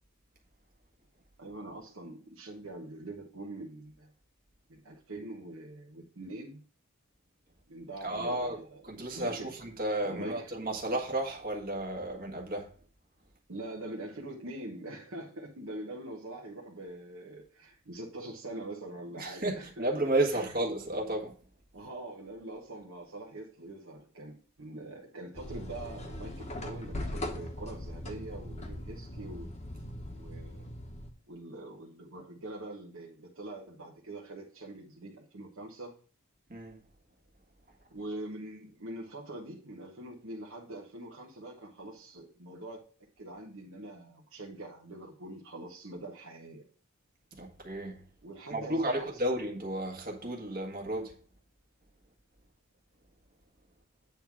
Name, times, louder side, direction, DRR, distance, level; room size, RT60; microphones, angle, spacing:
voice 1, 1.4-4.1 4.7-6.6 7.7-8.8 9.1-9.5 10.0-10.6 13.5-19.9 20.3-20.5 21.7-29.5 30.1-30.7 31.3-36.0 37.9-42.8 43.2-46.7 48.2-49.2, right 1 dB, 60° right, 1.2 m, -44 dB
voice 2, 8.0-12.7 19.2-21.3 36.5-36.8 47.3-48.0 48.5-51.1, right 1 dB, 40° right, 1.6 m, -33 dB
sound 1, 25.3-31.1, left 1 dB, 30° left, 1.1 m, -40 dB
9.0 x 3.7 x 5.9 m
head